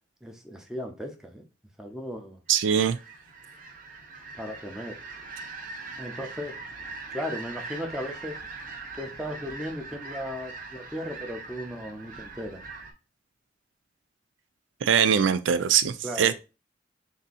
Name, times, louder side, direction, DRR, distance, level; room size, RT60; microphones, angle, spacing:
voice 1, 0.2-1.4 1.8-2.4 4.4-5.0 6.0-6.6 7.1-8.4 8.9-12.6 16.0-16.3, equal, 5° right, 0.7 m, -36 dB
sound 1, 2.5-12.9, right 4 dB, 50° right, 0.9 m, -41 dB
voice 2, 2.5-3.0 14.8-16.3, right 8 dB, 85° right, 0.4 m, -22 dB
3.6 x 2.7 x 4.0 m
head